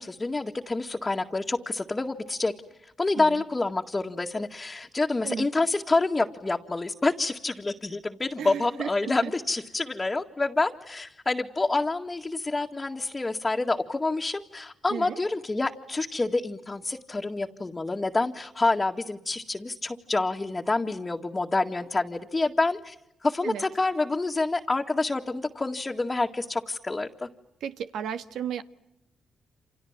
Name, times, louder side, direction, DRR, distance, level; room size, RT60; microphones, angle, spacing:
voice 1, 0.0-2.5 3.0-23.0 23.2-27.3, left 3 dB, 25° left, 0 dB, 2.1 m, -27 dB
voice 2, 8.4-9.3 14.9-15.2 23.4-23.6 27.6-28.6, right 8 dB, 85° right, 10 dB, 1.6 m, -34 dB
29.5 x 27.0 x 7.5 m, 0.84 s
cardioid pair, 65°, 0 cm